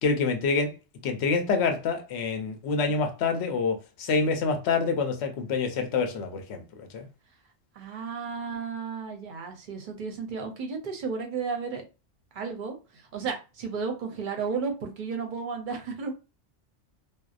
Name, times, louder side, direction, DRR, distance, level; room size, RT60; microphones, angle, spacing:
voice 1, 0.0-0.7 1.0-7.1, left 4 dB, 75° left, 0.8 m, -27 dB
voice 2, 7.7-11.8 12.3-16.1, right 5 dB, 55° right, 0.7 m, -33 dB
2.7 x 2.0 x 2.3 m
omnidirectional pair, 1.2 m